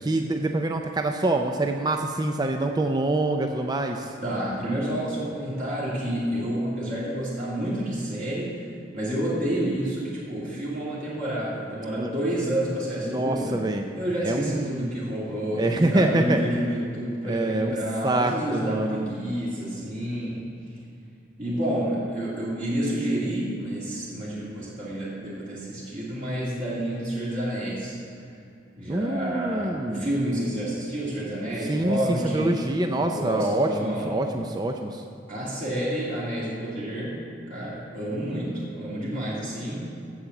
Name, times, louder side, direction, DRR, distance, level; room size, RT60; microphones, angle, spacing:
voice 1, 0.0-4.1 12.0-12.1 13.0-13.9 14.2-14.9 15.6-16.4 17.2-17.7 18.0-19.1 28.9-30.1 31.7-35.0, right 2 dB, 20° right, 4 dB, 0.4 m, -25 dB
voice 2, 4.2-8.7 8.9-13.6 14.0-20.4 21.4-28.0 28.7-32.6 32.9-34.1 35.3-37.2 37.5-39.8, right 1 dB, 45° right, -8 dB, 2.4 m, -29 dB
8.6 x 7.8 x 7.1 m, 2.6 s
head